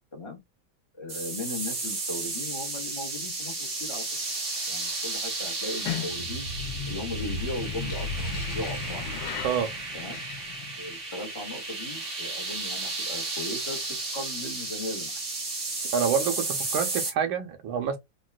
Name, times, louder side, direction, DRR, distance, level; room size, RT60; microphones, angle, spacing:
voice 1, 0.9-3.5 3.8-4.0 4.7-6.5 6.9-9.0 9.9-10.2 10.8-13.8 14.1-15.2, left 2 dB, 35° left, 0.4 m, -37 dB
sound 1, 1.1-17.1, right 3 dB, 40° right, 1.4 m, -33 dB
sound 2, 5.6-10.9, left 4 dB, 75° left, 1.4 m, -35 dB
voice 2, 15.9-18.0, right 7 dB, 85° right, 1.5 m, -27 dB
3.9 x 2.2 x 2.3 m
omnidirectional pair, 2.2 m